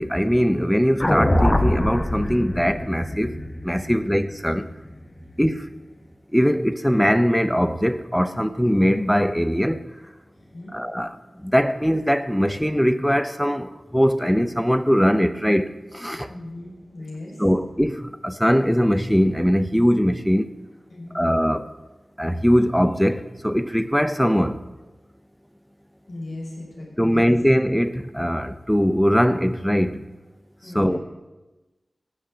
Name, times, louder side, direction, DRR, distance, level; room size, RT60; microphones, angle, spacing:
voice 1, 0.0-3.3 3.6-4.6 5.4-5.6 6.3-9.8 10.7-11.1 11.4-13.7 13.9-15.7 15.9-16.3 17.4-20.5 21.1-21.6 22.2-24.6 27.0-30.0 30.7-31.0, equal, ahead, 0.9 m, -21 dB
sound 1, 1.0-5.3, left 1 dB, 25° left, 1.2 m, -24 dB
voice 2, 3.8-4.2 10.3-10.7 16.1-17.5 20.9-21.3 26.1-27.3 30.6-31.0, left 2 dB, 70° left, 6.0 m, -38 dB
15.5 x 6.4 x 8.9 m
wide cardioid pair, 60°, 0 cm